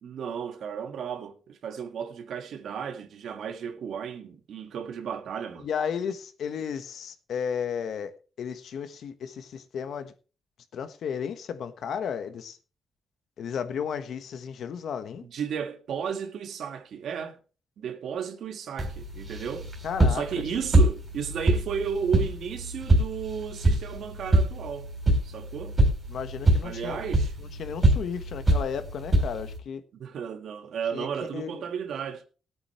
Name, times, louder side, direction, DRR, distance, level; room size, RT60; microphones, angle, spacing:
voice 1, 0.0-5.7 15.2-17.4 17.8-19.7 20.1-24.9 25.2-25.8 26.6-27.3 29.9-32.2, right 7 dB, 75° right, 1.6 m, -34 dB
voice 2, 5.6-10.1 10.7-12.6 13.4-15.3 19.8-20.2 26.1-27.0 27.4-29.8 30.9-31.1 31.3-31.6, left 7 dB, 70° left, 1.2 m, -34 dB
sound 1, 18.8-29.6, right 1 dB, 25° right, 3.6 m, -25 dB
21.5 x 8.8 x 3.1 m
wide cardioid pair, 160°, 0 cm